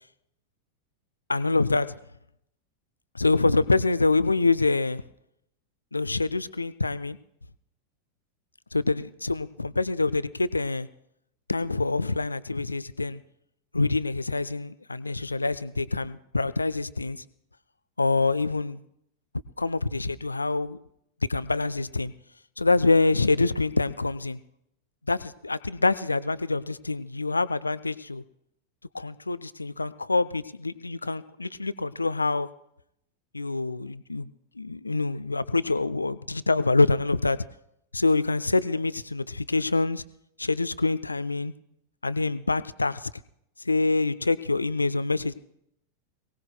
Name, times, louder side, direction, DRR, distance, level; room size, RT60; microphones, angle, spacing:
voice 1, 1.3-1.9 3.1-5.0 5.9-7.2 8.7-10.9 11.5-13.2 13.7-17.2 18.0-18.8 19.6-20.8 21.3-22.1 22.6-24.4 25.1-28.2 28.9-32.5 33.3-37.4 37.9-40.0 40.4-41.5 42.0-43.1 43.6-45.3, left 3 dB, 80° left, 16 dB, 0.5 m, -26 dB
23.0 x 18.0 x 2.2 m, 0.75 s
figure-of-eight pair, 90°, 0 cm